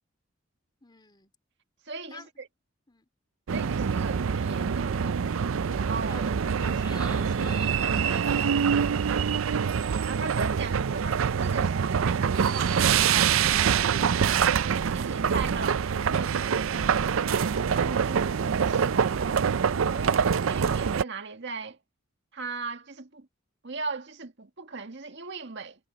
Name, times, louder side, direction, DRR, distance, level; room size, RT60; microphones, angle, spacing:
voice 1, 0.8-1.3 2.1-2.3 2.9-3.0 3.8-4.2 6.1-6.3 6.6-9.3, left 3 dB, 25° left, 3.6 m, -47 dB
voice 2, 1.9-2.5 3.5-5.5 5.8-6.3 10.0-13.8 14.6-19.5 19.9-21.8 22.3-23.3 23.6-25.9, right 4 dB, 60° right, 1.8 m, -38 dB
sound 1, 3.5-21.0, right 7 dB, 90° right, 0.5 m, -25 dB
head